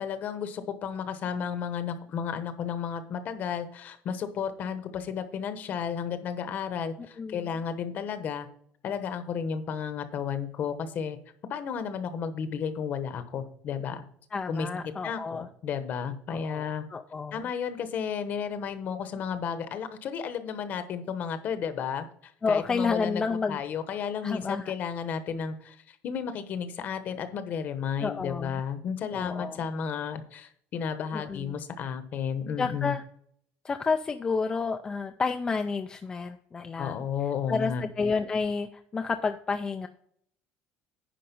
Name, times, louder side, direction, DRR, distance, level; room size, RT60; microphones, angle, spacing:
voice 1, 0.0-8.5 8.8-11.2 11.5-14.1 14.5-14.7 15.0-16.9 17.3-32.9 36.8-37.8, left 7 dB, 40° left, 10 dB, 1.0 m, -33 dB
voice 2, 14.3-15.5 16.3-17.4 22.4-23.6 24.2-24.7 28.0-28.6 29.1-29.6 31.1-31.6 32.6-33.0 33.6-37.0 37.5-39.9, left 4 dB, 15° left, 7 dB, 0.4 m, -30 dB
10.0 x 5.2 x 5.3 m, 0.65 s
cardioid pair, 165°, 4 cm